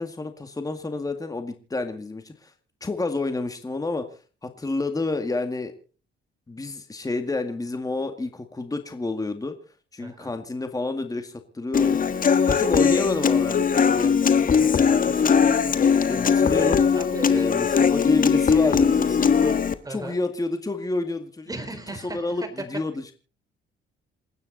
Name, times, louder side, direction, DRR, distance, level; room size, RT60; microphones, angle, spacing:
voice 1, 0.0-2.5 2.8-4.0 4.4-5.7 6.5-9.6 9.9-12.0 12.5-15.8 16.1-16.8 17.3-19.6 19.9-21.5 22.0-22.4 22.7-23.1, left 3 dB, 20° left, 7 dB, 2.0 m, -29 dB
voice 2, 10.0-10.3 16.9-17.8 19.8-20.2 21.5-22.7, right 2 dB, 20° right, 7 dB, 4.2 m, -36 dB
Human voice / Acoustic guitar, 11.7-19.7, left 6 dB, 45° left, 1.5 m, -20 dB
28.0 x 9.6 x 4.1 m, 0.38 s
cardioid pair, 90°, 20 cm